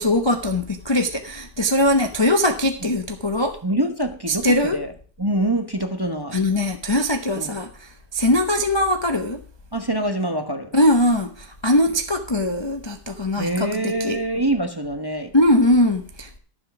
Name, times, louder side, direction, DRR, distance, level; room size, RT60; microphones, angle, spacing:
voice 1, 0.0-3.6 4.3-4.8 6.3-9.4 10.7-14.2 15.3-16.4, left 1 dB, 30° left, 5 dB, 0.5 m, -21 dB
voice 2, 3.6-4.9 5.2-6.4 7.3-7.6 9.7-10.7 13.4-15.3, right 1 dB, 20° right, 6 dB, 0.8 m, -25 dB
12.5 x 7.4 x 5.9 m, 0.42 s
omnidirectional pair, 1.8 m